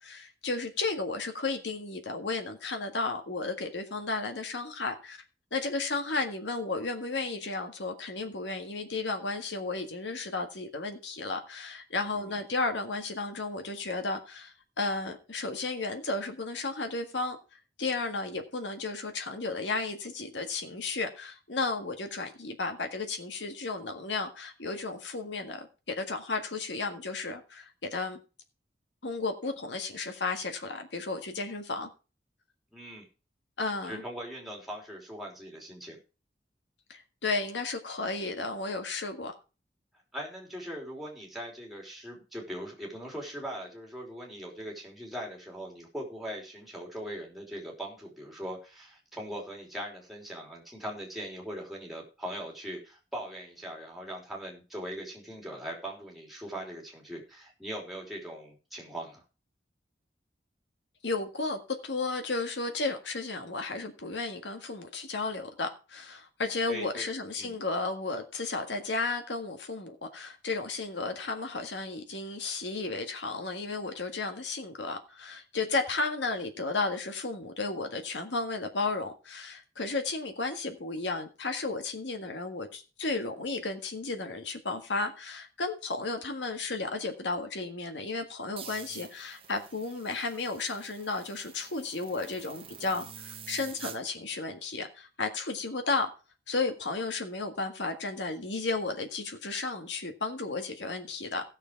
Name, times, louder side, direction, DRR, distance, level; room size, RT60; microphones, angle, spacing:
voice 1, 0.0-5.2 5.5-17.4 17.8-28.2 29.0-31.9 33.6-34.0 36.9-39.3 61.0-96.1 96.5-101.4, left 3 dB, 85° left, 1.7 m, -33 dB
voice 2, 32.7-33.0 33.8-36.0 40.1-59.2 66.7-67.1 67.4-67.5, equal, ahead, 3.3 m, -40 dB
sound 1, 88.6-94.0, right 8 dB, 30° right, 1.2 m, -47 dB
15.5 x 6.6 x 4.6 m
head